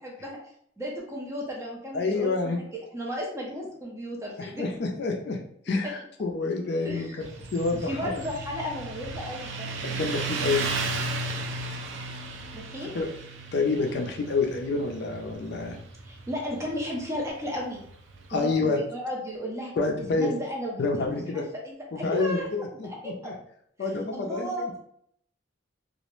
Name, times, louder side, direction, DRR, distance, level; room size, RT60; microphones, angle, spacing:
voice 1, 0.0-0.4 0.8-2.6 2.9-4.7 5.8-5.9 6.8-7.2 7.8-9.9 12.5-12.9 16.1-17.8 18.3-19.7 20.0-23.3 23.8-24.8, equal, 15° right, -2 dB, 0.5 m, -34 dB
voice 2, 1.9-2.6 4.4-5.4 5.7-8.2 9.8-10.7 12.8-13.1 13.5-15.8 18.3-18.8 19.8-20.3 20.8-21.5 21.9-23.3 23.8-24.5, left 3 dB, 55° left, 2 dB, 0.4 m, -28 dB
Motorcycle, 7.2-18.3, right 3 dB, 70° right, 0.4 m, -35 dB
2.3 x 2.0 x 3.0 m, 0.68 s
head